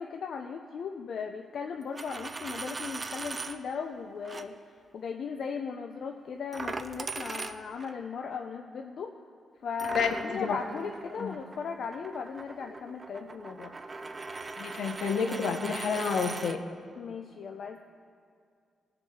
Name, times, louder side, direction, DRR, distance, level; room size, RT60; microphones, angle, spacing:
voice 1, 0.0-4.6 4.9-9.1 9.6-13.7 17.0-17.8, left 6 dB, 60° left, 4 dB, 0.4 m, -37 dB
Coin (dropping), 1.8-3.6 4.2-4.4 6.5-7.9 9.8-16.6, right 3 dB, 25° right, 0.4 m, -40 dB
voice 2, 9.9-10.6 11.2-11.3 14.6-16.6, left 5 dB, 75° left, 6 dB, 0.9 m, -29 dB
18.5 x 6.8 x 4.2 m, 2.3 s
wide cardioid pair, 145°, 0 cm